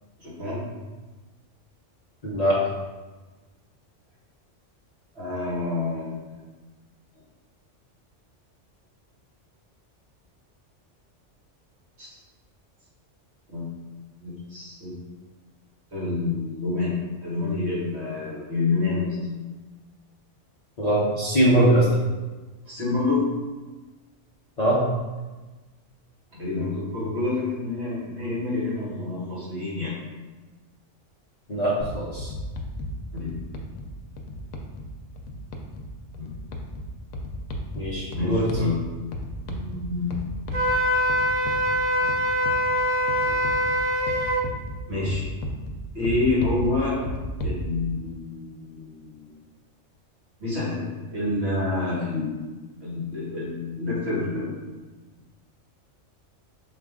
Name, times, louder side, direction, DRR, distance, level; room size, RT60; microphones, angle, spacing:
voice 1, 0.2-0.7 5.2-6.4 12.0-12.1 13.5-13.7 14.2-15.0 15.9-19.2 22.7-23.2 26.3-30.0 33.1-33.4 36.2-36.3 38.1-38.8 39.5-40.2 42.0-42.1 43.2-43.4 44.9-45.2 45.9-47.1 47.4-49.3 50.4-50.8 51.1-52.4 52.8-54.6, left 3 dB, 60° right, -7 dB, 1.8 m, -28 dB
voice 2, 2.2-2.6 20.8-21.9 24.6-24.8 31.5-32.3 37.7-38.4, right 1 dB, 40° left, -7 dB, 0.7 m, -21 dB
sound 1, 31.8-47.6, equal, 80° left, 0.9 m, -35 dB
Wind instrument woodwind instrument, 40.5-44.4, equal, 80° right, 1.1 m, -23 dB
4.8 x 2.3 x 3.6 m, 1.2 s
omnidirectional pair, 1.3 m